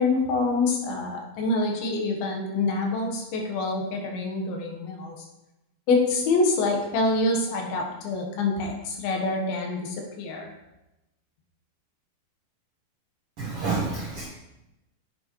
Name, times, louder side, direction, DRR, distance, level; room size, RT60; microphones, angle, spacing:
voice 1, 0.0-5.2 5.9-10.5, left 3 dB, 85° left, 1 dB, 3.2 m, -26 dB
voice 2, 13.4-14.3, right 4 dB, 75° right, -3 dB, 1.3 m, -28 dB
9.4 x 6.2 x 3.1 m, 0.94 s
omnidirectional pair, 4.2 m